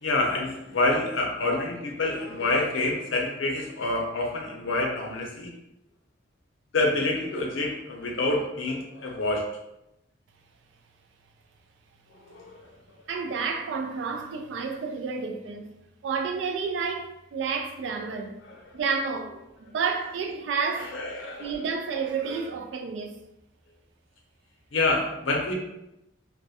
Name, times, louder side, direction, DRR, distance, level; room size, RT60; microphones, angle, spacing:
voice 1, 0.0-5.5 6.7-9.4 12.1-12.7 18.4-18.6 20.8-21.6 24.7-25.5, left 2 dB, 75° left, 0.5 m, -27 dB
voice 2, 13.1-15.7 16.0-18.3 18.7-21.0 21.4-23.2, right 5 dB, 65° right, 0.3 m, -30 dB
2.3 x 2.0 x 2.7 m
head